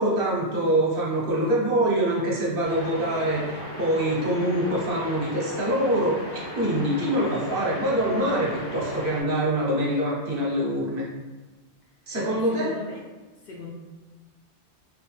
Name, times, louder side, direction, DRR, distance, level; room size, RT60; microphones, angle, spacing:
voice 1, 0.0-11.0 12.1-12.7, right 1 dB, 55° right, -4 dB, 0.9 m, -24 dB
sound 1, 2.6-9.2, left 1 dB, 80° left, 1.3 m, -37 dB
voice 2, 12.1-13.0 13.4-13.7, left 2 dB, 60° left, -2 dB, 0.6 m, -39 dB
3.9 x 2.1 x 3.1 m, 1.2 s
omnidirectional pair, 1.2 m